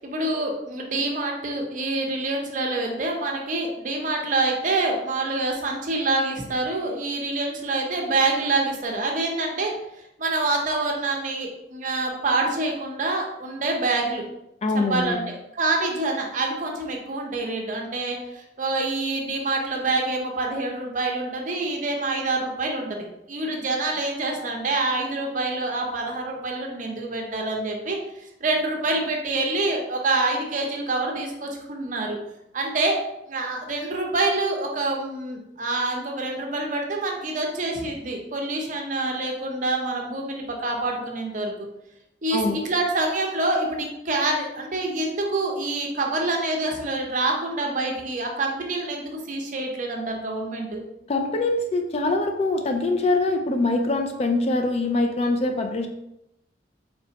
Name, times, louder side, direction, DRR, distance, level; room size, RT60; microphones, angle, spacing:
voice 1, 0.0-9.7 10.2-14.2 14.7-32.2 32.5-33.0 33.3-41.5 42.2-50.8, right 2 dB, 45° right, 1 dB, 0.7 m, -26 dB
voice 2, 14.6-15.2 42.3-42.6 51.1-55.9, left 2 dB, 35° left, 5 dB, 0.3 m, -23 dB
4.1 x 3.2 x 2.8 m, 0.86 s
head